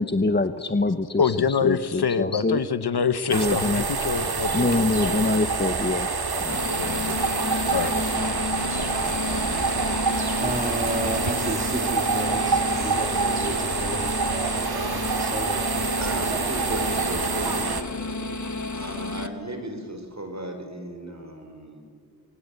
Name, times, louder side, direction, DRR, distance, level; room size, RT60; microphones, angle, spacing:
voice 1, 0.0-2.6 3.3-3.9 4.5-6.1 6.4-6.6, left 2 dB, 30° left, 10 dB, 1.0 m, -25 dB
voice 2, 1.2-5.4 6.8-7.2 7.7-8.0, left 6 dB, 85° left, 14 dB, 1.1 m, -26 dB
sound 1, 3.3-17.8, right 4 dB, 75° right, 2.0 m, -26 dB
sound 2, 6.5-19.3, left 3 dB, 50° left, 1.5 m, -32 dB
voice 3, 10.4-16.6 16.9-17.0, right 1 dB, 20° right, 7 dB, 2.7 m, -33 dB
voice 4, 16.0-18.2 18.7-21.8, right 1 dB, 45° right, 6 dB, 4.7 m, -35 dB
28.0 x 22.5 x 8.3 m, 2.3 s
wide cardioid pair, 50°, 38 cm